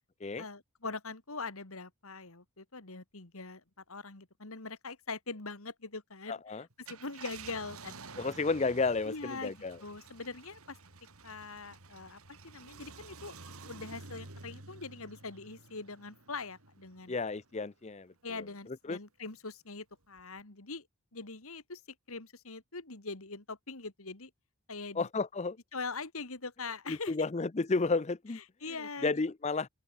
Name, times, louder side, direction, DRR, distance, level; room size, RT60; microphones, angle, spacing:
voice 1, 0.4-8.0 9.1-10.8 11.2-13.4 13.6-17.1 18.2-20.9 21.1-21.8 22.1-24.3 24.7-25.1 25.7-27.1 28.3-29.1, left 4 dB, 70° left, 2.4 m, -42 dB
voice 2, 6.3-6.6 8.2-9.8 17.1-18.4 18.9-19.0 25.0-25.6 26.9-28.4 29.0-29.7, left 3 dB, 30° left, 0.5 m, -32 dB
Car, 6.7-17.5 18.0-18.1 20.2-20.4, right 4 dB, 75° right, 2.9 m, -51 dB
open air
head